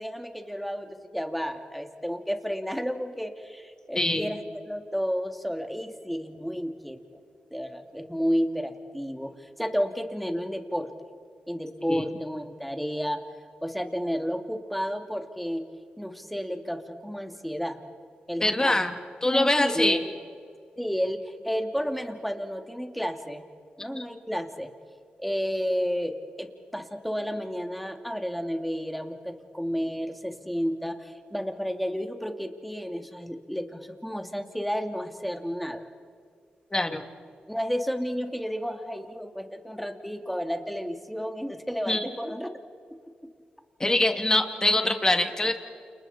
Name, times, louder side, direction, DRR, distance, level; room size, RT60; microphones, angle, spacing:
voice 1, 0.0-7.0 7.5-10.9 11.5-13.2 13.6-15.6 16.0-17.8 18.3-18.8 19.3-20.0 20.8-23.4 23.8-24.7 25.2-35.8 37.5-42.5, equal, ahead, 5 dB, 2.6 m, -31 dB
voice 2, 4.0-4.3 11.9-12.1 18.4-18.9 19.2-20.0 23.9-24.0 36.7-37.0 41.9-42.1 43.8-45.5, left 2 dB, 20° left, 5 dB, 2.7 m, -24 dB
29.5 x 29.0 x 4.4 m, 2.2 s
cardioid pair, 65°, 3 cm